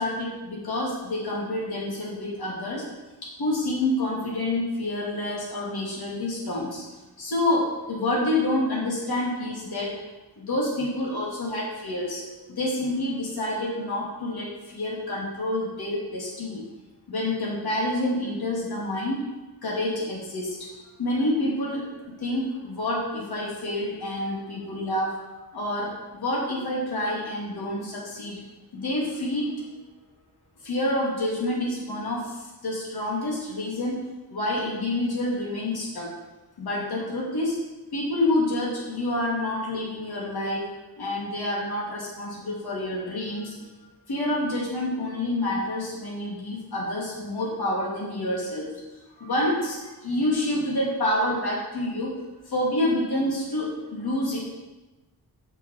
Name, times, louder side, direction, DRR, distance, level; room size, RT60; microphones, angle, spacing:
voice 1, 0.0-2.9 3.2-6.8 7.2-10.0 10.4-12.2 12.5-16.6 17.1-19.2 19.6-20.6 21.0-21.8 22.2-25.1 25.5-28.4 28.7-29.6 30.6-34.0 34.3-36.1 36.6-37.5 37.9-40.7 41.0-43.6 44.1-48.7 49.2-52.1 52.5-54.4, left 1 dB, 70° left, -4 dB, 2.7 m, -28 dB
6.8 x 5.8 x 7.2 m, 1.1 s
wide cardioid pair, 180°, 39 cm